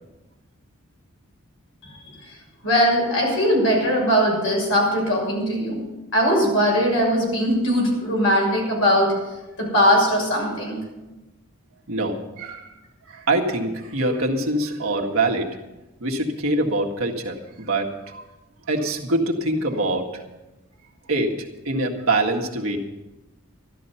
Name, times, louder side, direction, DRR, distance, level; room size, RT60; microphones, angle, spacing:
voice 1, 2.6-5.8 6.1-9.1 9.6-10.8, equal, 65° left, -2 dB, 6.7 m, -20 dB
voice 2, 11.9-12.7 13.1-15.5 16.0-18.2 18.7-20.2 21.1-22.8, right 2 dB, 75° right, 1 dB, 1.8 m, -24 dB
14.0 x 12.0 x 5.7 m, 1.1 s
head